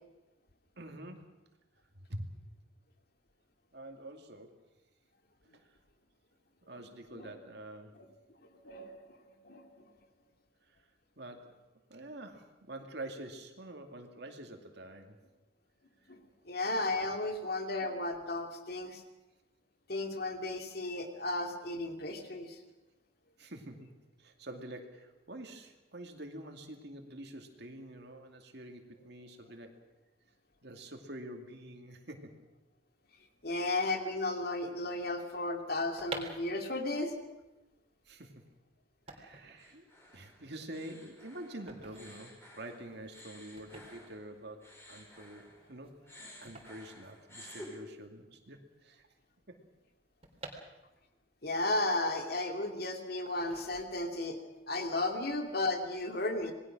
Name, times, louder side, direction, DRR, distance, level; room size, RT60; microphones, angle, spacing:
voice 1, 0.8-1.3 2.1-2.3 3.7-4.6 5.5-5.7 6.6-7.9 10.7-10.8 11.2-11.5 11.9-15.2 23.4-23.9 24.2-29.8 30.6-32.4 38.1-38.4 39.1-39.9 40.1-49.1 49.5-49.6 50.6-50.8, right 1 dB, 60° right, 4 dB, 2.5 m, -47 dB
voice 2, 8.5-9.9 16.1-19.0 19.9-22.6 33.4-37.1 51.4-54.4 54.7-56.5, left 2 dB, 55° left, 4 dB, 2.7 m, -34 dB
sound 1, 36.0-47.8 48.1-48.2 48.4-51.2 51.7-52.7 53.2-54.2 54.6-54.9, right 3 dB, 30° right, 3.5 m, -50 dB
sound 2, 39.6-45.8 46.1-47.7, left 1 dB, 15° left, 6.5 m, -53 dB
27.0 x 20.5 x 6.2 m, 1.0 s
head